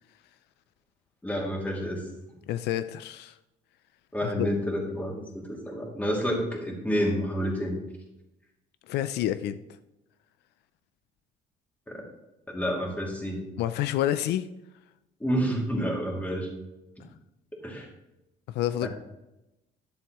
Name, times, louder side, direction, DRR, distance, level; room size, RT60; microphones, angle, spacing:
voice 1, 1.2-2.0 4.1-7.8 11.9-12.0 12.5-13.4 15.2-16.5 17.6-17.9 18.8-18.9, equal, 10° left, -1 dB, 2.6 m, -29 dB
voice 2, 2.5-3.4 4.2-4.5 8.9-9.6 13.6-14.5 18.5-18.9, left 12 dB, 80° left, 12 dB, 0.4 m, -28 dB
11.0 x 7.1 x 3.0 m, 0.93 s
cardioid pair, 110°, 17 cm